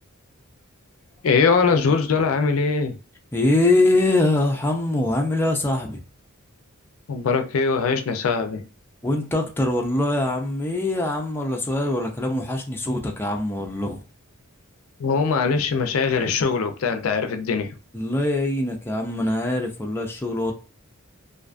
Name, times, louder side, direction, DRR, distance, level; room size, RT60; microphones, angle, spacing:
voice 1, 1.2-3.0 7.1-8.6 15.0-17.7, left 5 dB, 75° left, 0.4 m, -21 dB
voice 2, 3.3-6.0 9.0-14.0 17.9-20.5, left 2 dB, 10° left, 0.4 m, -23 dB
2.5 x 2.3 x 2.4 m
head